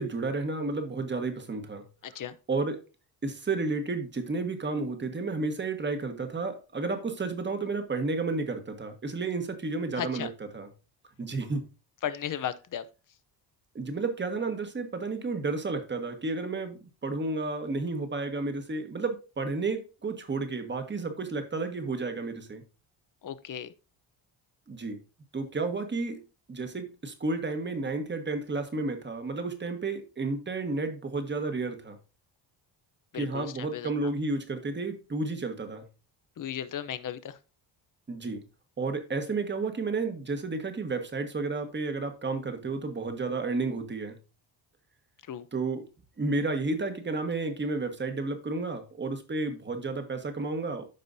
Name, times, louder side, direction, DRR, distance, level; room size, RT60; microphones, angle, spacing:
voice 1, 0.0-1.8 2.5-2.8 3.2-10.3 10.5-10.7 11.2-11.6 13.7-22.6 24.7-25.0 25.3-26.2 26.5-32.0 33.1-35.8 38.1-38.4 38.8-44.2 45.5-45.8 46.2-50.9, right 3 dB, 25° right, 1.5 m, -31 dB
voice 2, 2.0-2.4 9.9-10.3 12.0-12.9 23.2-23.7 33.1-33.9 36.4-37.4 45.3-45.5, left 9 dB, 45° left, 0.7 m, -35 dB
13.0 x 5.1 x 2.7 m
cardioid pair, 125°, 44 cm